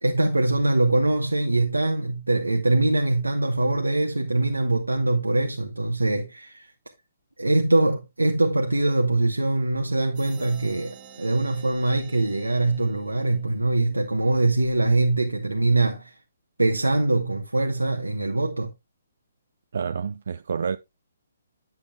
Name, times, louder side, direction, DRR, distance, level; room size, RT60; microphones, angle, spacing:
voice 1, 0.0-6.7 7.4-16.1 16.6-18.7, right 2 dB, 85° right, 1.0 m, -23 dB
sound 1, 10.2-13.7, right 7 dB, 30° right, 1.5 m, -48 dB
voice 2, 19.7-20.8, right 6 dB, 60° right, 0.4 m, -28 dB
10.0 x 7.2 x 2.3 m
figure-of-eight pair, 135°, 0 cm